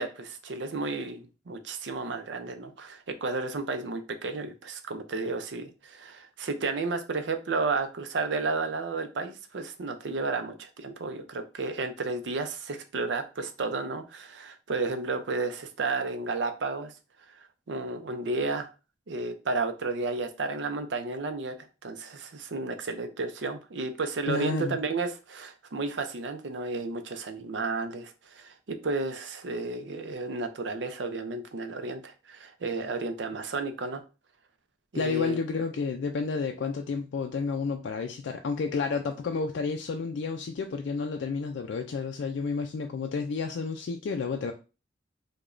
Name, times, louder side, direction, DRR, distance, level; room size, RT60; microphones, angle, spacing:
voice 1, 0.0-16.9 17.3-17.4 17.7-18.7 19.1-21.5 21.8-34.0 34.9-35.4, right 3 dB, 80° right, 8 dB, 0.5 m, -32 dB
voice 2, 24.3-24.8 34.9-44.5, left 4 dB, 80° left, 5 dB, 0.3 m, -31 dB
4.7 x 2.2 x 2.5 m, 0.32 s
head